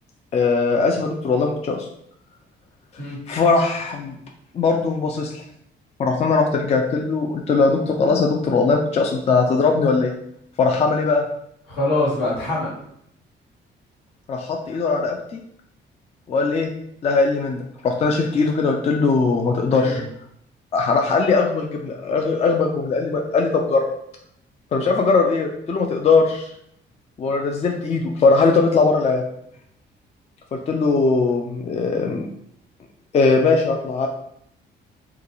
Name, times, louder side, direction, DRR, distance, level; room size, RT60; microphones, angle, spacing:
voice 1, 0.3-1.9 3.3-4.2 4.5-5.4 6.0-10.1 10.6-11.2 14.3-15.4 16.3-16.7 17.0-20.0 20.7-23.8 24.7-26.5 27.2-29.2 30.7-32.3 33.1-34.1, left 4 dB, 35° left, 2 dB, 0.4 m, -20 dB
voice 2, 11.7-12.7 19.7-20.0, left 2 dB, 80° left, -7 dB, 1.4 m, -24 dB
2.4 x 2.3 x 2.9 m, 0.71 s
cardioid pair, 90°, 20 cm